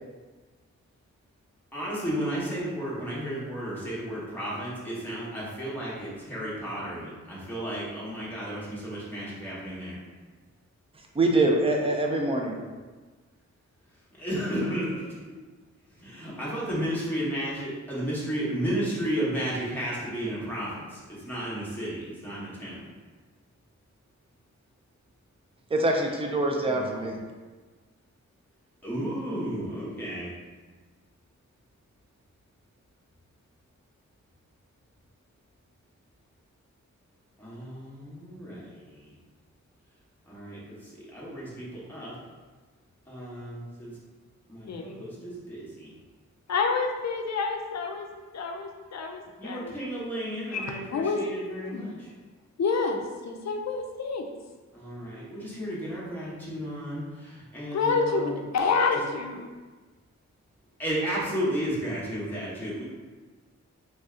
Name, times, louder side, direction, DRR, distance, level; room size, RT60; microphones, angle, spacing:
voice 1, 1.7-10.0 14.2-15.0 16.0-22.9 26.6-27.2 28.8-30.3 37.4-39.1 40.3-42.2 43.1-43.9 44.5-45.9 49.4-52.1 54.7-58.4 60.8-62.8, right 1 dB, 5° left, -8 dB, 1.1 m, -33 dB
voice 2, 11.1-12.5 25.7-27.2, right 2 dB, 20° right, 1 dB, 0.4 m, -24 dB
voice 3, 46.5-48.1 48.3-49.7 50.5-51.2 51.5-52.0 52.6-53.0 53.2-54.2 57.7-59.5, left 4 dB, 65° left, 3 dB, 0.5 m, -28 dB
3.2 x 2.7 x 3.6 m, 1.3 s
wide cardioid pair, 160°, 29 cm